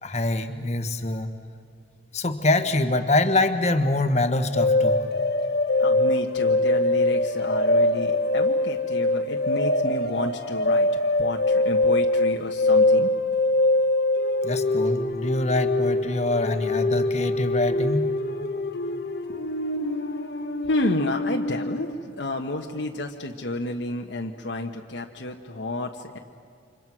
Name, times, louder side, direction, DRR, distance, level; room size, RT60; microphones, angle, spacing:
voice 1, 0.0-1.3 2.1-5.1 14.4-18.1, left 2 dB, 40° left, 9 dB, 1.4 m, -24 dB
sound 1, 4.6-22.0, left 2 dB, 60° left, 1.6 m, -23 dB
voice 2, 5.8-10.9 11.2-13.1 19.3-19.5 20.6-26.2, left 2 dB, 80° left, 1 dB, 1.2 m, -31 dB
30.0 x 26.0 x 6.2 m, 2.5 s
head